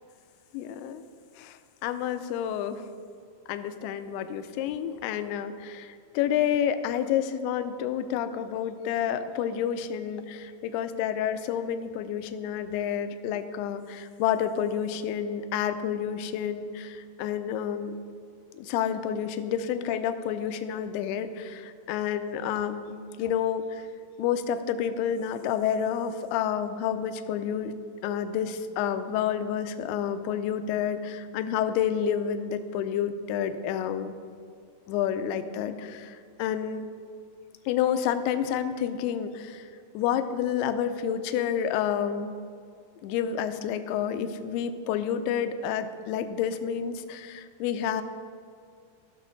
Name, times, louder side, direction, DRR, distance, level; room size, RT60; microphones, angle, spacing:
voice 1, 0.5-1.0 1.4-1.6 1.8-2.8 3.5-18.1 18.6-23.9 24.2-34.1 34.9-36.9 37.7-39.7 39.9-42.4 43.0-48.0, left 9 dB, 80° left, 10 dB, 2.5 m, -29 dB
15.5 x 6.4 x 3.9 m, 2.3 s
omnidirectional pair, 4.8 m